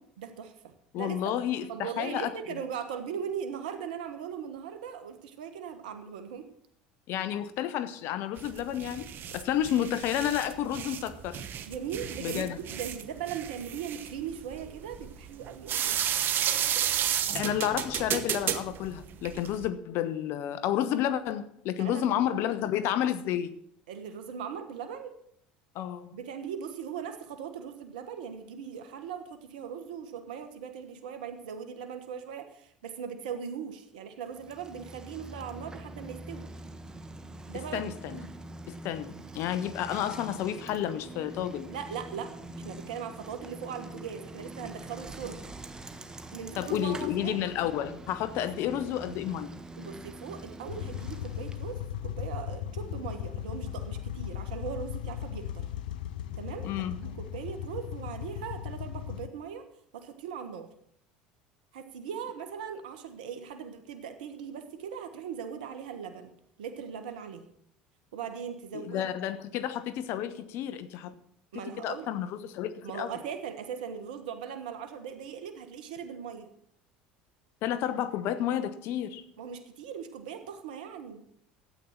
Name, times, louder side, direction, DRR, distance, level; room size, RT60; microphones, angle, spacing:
voice 1, 0.2-1.3 1.7-6.5 11.6-16.0 21.8-22.1 23.9-25.1 26.1-36.5 37.5-38.3 41.7-45.4 46.3-47.4 48.4-48.5 49.8-55.6 56.3-56.7 57.0-59.6 59.9-60.7 61.7-66.3 66.6-67.5 68.1-69.1 71.5-72.1 72.8-76.5 79.4-81.2, right 7 dB, 85° right, 1.3 m, -39 dB
voice 2, 0.9-2.3 7.1-11.5 12.2-12.6 17.3-23.5 25.7-26.2 37.5-38.2 38.7-41.7 46.6-49.6 56.6-57.0 68.7-71.1 71.5-73.1 77.6-79.2, left 11 dB, 60° left, 1.0 m, -31 dB
sound 1, 8.4-19.7, right 10 dB, 50° right, 1.1 m, -32 dB
Bicycle, 34.3-51.8, right 1 dB, 15° right, 1.4 m, -44 dB
sound 2, 50.7-59.3, left 11 dB, 85° left, 0.7 m, -37 dB
12.0 x 8.7 x 5.8 m
hypercardioid pair, 80°, 5 cm